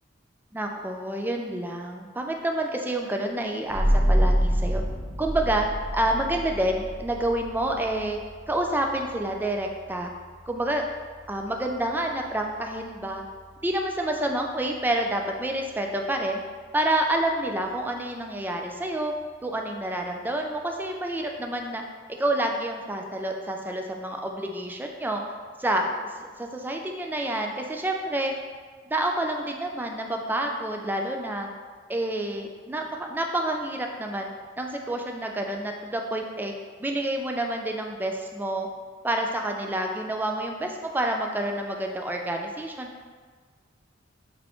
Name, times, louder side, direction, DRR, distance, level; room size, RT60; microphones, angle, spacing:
voice 1, 0.5-4.8 5.2-5.7 5.9-8.2 8.5-10.1 10.5-10.8 11.3-13.2 13.6-16.4 16.7-19.1 19.4-21.8 22.2-25.2 25.6-25.9 26.4-28.3 28.8-31.5 31.9-34.3 34.6-36.5 36.8-38.7 39.0-42.9, right 1 dB, 10° right, 2 dB, 0.3 m, -28 dB
sound 1, 3.7-14.9, equal, 20° left, 0.7 m, -29 dB
4.0 x 3.5 x 3.0 m, 1.5 s
head